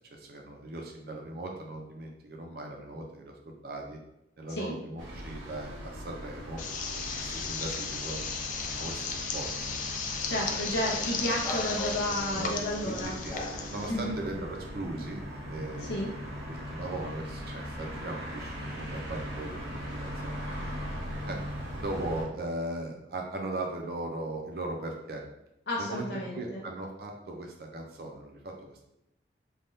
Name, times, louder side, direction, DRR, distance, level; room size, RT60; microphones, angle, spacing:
voice 1, 0.1-3.3 3.6-4.0 4.4-6.6 7.0-8.2 8.8-9.8 10.5-10.7 11.6-11.7 12.3-12.5 12.8-13.4 13.7-16.0 16.4-19.5 19.9-20.4 21.1-21.4 21.8-25.2 25.8-26.0 26.3-28.8, right 2 dB, 55° right, 1 dB, 0.5 m, -38 dB
sound 1, 5.0-22.2, equal, 85° right, 0.9 m, -40 dB
sound 2, 6.6-13.9, left 5 dB, 45° left, 0.3 m, -35 dB
voice 2, 10.3-13.1 13.9-14.2 15.8-16.1 25.7-26.6, left 1 dB, 70° left, -3 dB, 0.7 m, -32 dB
sound 3, 11.4-12.6 13.3-14.2, left 1 dB, 20° left, 0.7 m, -39 dB
3.4 x 2.3 x 2.7 m, 0.85 s
head